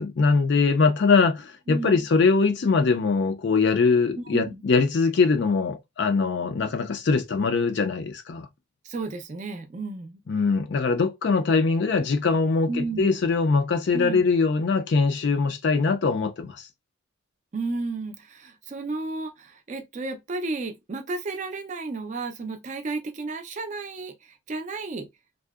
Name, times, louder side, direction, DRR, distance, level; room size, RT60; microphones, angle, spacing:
voice 1, 0.0-8.5 10.3-16.7, left 4 dB, 55° left, 0.4 m, -22 dB
voice 2, 1.7-2.1 4.1-4.6 8.8-10.2 12.7-13.2 13.9-14.2 17.5-25.1, right 3 dB, 35° right, 0.4 m, -33 dB
2.6 x 2.0 x 2.3 m
head